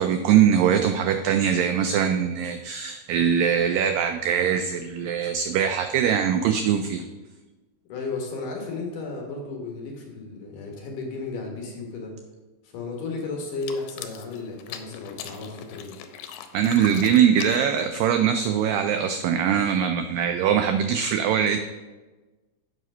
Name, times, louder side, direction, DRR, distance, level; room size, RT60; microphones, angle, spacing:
voice 1, 0.0-7.1 16.5-21.6, right 8 dB, 85° right, 7 dB, 1.9 m, -22 dB
voice 2, 7.9-12.2 12.6-16.0, left 3 dB, 65° left, 1 dB, 2.5 m, -34 dB
sound 1, 13.5-18.3, left 9 dB, 85° left, 2.6 m, -41 dB
7.6 x 5.8 x 5.4 m, 1.2 s
omnidirectional pair, 4.5 m